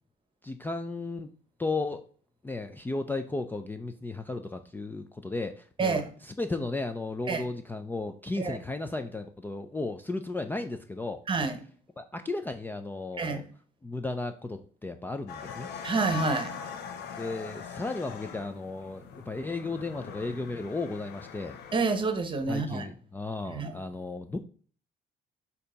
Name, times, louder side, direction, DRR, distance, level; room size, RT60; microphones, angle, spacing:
voice 1, 0.4-1.3 1.6-2.0 2.4-11.2 12.0-13.4 13.8-15.7 17.2-21.6 22.5-24.4, left 3 dB, 10° left, 0.4 m, -34 dB
voice 2, 5.8-6.1 7.3-7.4 8.4-8.6 11.3-11.6 13.2-13.5 15.8-16.5 21.7-22.9 23.5-23.7, right 4 dB, 30° right, 1.0 m, -28 dB
sound 1, 15.3-21.8, left 7 dB, 90° left, 0.8 m, -41 dB
6.6 x 2.8 x 5.1 m
cardioid pair, 110°, 17 cm